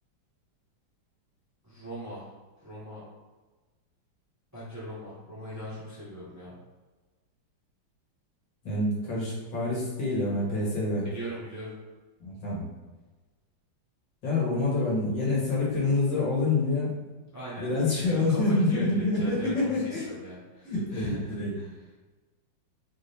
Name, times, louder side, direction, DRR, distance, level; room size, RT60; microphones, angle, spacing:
voice 1, 1.6-2.3 2.6-3.0 4.5-6.6 11.0-11.7 17.3-17.7 18.0-21.8, right 1 dB, 10° right, -8 dB, 0.9 m, -40 dB
voice 2, 8.6-11.1 12.2-12.7 14.2-16.9 17.6-20.1 20.6-21.5, left 2 dB, 70° left, -6 dB, 2.2 m, -27 dB
4.9 x 2.7 x 3.4 m, 1.2 s
omnidirectional pair, 2.1 m